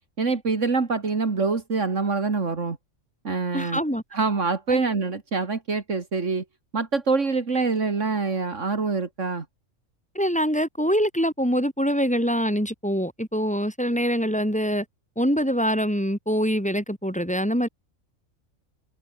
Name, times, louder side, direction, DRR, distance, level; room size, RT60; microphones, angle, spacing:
voice 1, 0.2-2.8 3.2-3.8 4.1-6.4 6.7-9.5, right 4 dB, 70° right, 2.6 m, -25 dB
voice 2, 3.5-4.0 4.7-4.8 10.1-14.8 15.2-17.7, equal, 5° left, 5.5 m, -24 dB
omnidirectional pair, 1.3 m